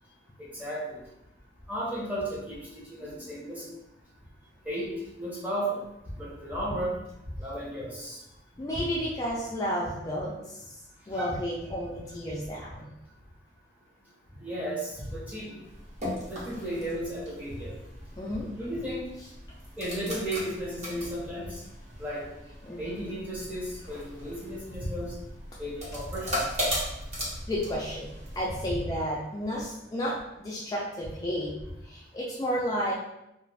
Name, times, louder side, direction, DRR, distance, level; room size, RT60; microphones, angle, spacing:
voice 1, 0.4-1.0 1.7-3.6 4.7-4.9 5.2-5.8 6.2-6.9 7.4-8.2 11.1-11.4 14.4-15.6 16.3-17.7 18.6-19.0 19.8-21.6 22.0-22.3 22.8-25.1 25.6-26.4 28.7-28.8, right 1 dB, 10° right, -5 dB, 0.7 m, -34 dB
voice 2, 8.6-10.8 11.1-12.9 18.2-18.5 22.6-23.0 27.5-28.1 28.4-31.5 31.8-32.9, equal, 20° left, -5 dB, 0.3 m, -32 dB
sound 1, 15.6-28.7, equal, 40° right, 1.0 m, -38 dB
2.4 x 2.3 x 3.3 m, 0.89 s
head